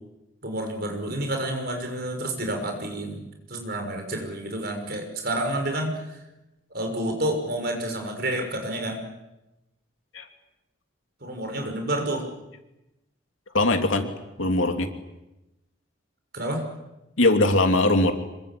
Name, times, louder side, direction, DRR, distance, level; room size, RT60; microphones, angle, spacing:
voice 1, 0.4-3.2 3.5-6.2 6.7-9.0 11.2-12.3 16.3-16.6, right 1 dB, 50° right, 4 dB, 6.1 m, -29 dB
voice 2, 13.5-14.1 14.4-14.9 17.2-18.1, left 2 dB, 80° left, 5 dB, 3.1 m, -20 dB
26.5 x 23.0 x 8.6 m, 0.97 s
head